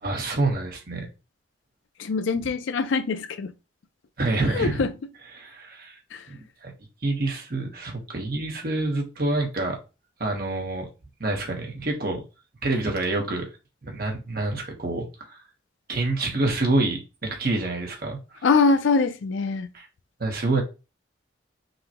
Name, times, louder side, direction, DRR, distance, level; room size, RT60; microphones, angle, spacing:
voice 1, 0.0-1.1 4.2-4.8 5.3-6.0 6.3-6.7 7.0-9.8 10.2-10.9 11.2-12.2 12.6-13.5 13.8-15.4 15.9-18.4 19.7-19.8 20.2-20.6, right 2 dB, 50° right, 1.1 m, -27 dB
voice 2, 2.0-3.5 4.5-4.9 6.1-6.2 18.4-19.7, left 4 dB, 85° left, 0.4 m, -23 dB
5.5 x 2.2 x 2.9 m
head